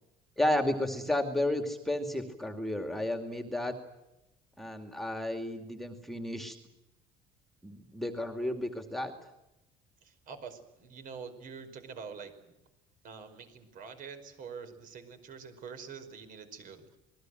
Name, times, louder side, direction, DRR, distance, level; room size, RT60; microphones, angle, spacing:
voice 1, 0.4-3.7 4.6-6.6 7.6-9.1, left 1 dB, ahead, 5 dB, 2.5 m, -32 dB
voice 2, 10.0-12.3 13.0-17.0, right 6 dB, 50° right, 9 dB, 5.2 m, -46 dB
27.5 x 21.0 x 7.9 m, 0.92 s
cardioid pair, 150°, 18 cm